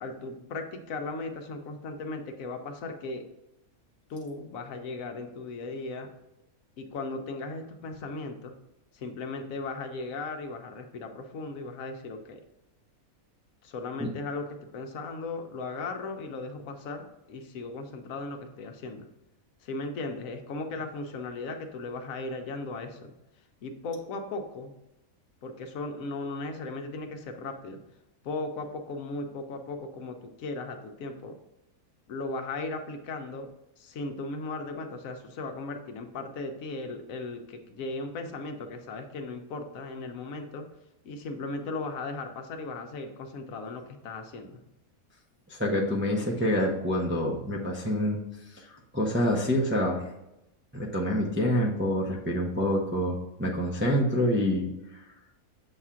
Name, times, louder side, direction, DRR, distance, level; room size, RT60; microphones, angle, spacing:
voice 1, 0.0-3.2 4.1-6.1 6.8-8.5 8.9-12.4 13.6-14.4 14.7-19.1 19.6-23.1 23.6-24.7 25.4-27.8 28.2-31.4 32.1-33.5 33.8-40.7 41.0-44.6, left 3 dB, 70° left, 5 dB, 1.0 m, -37 dB
voice 2, 45.5-48.2 48.5-48.7 48.9-50.0 50.7-55.0, equal, 15° right, -2 dB, 0.4 m, -27 dB
7.0 x 2.4 x 5.6 m, 0.90 s
omnidirectional pair, 1.5 m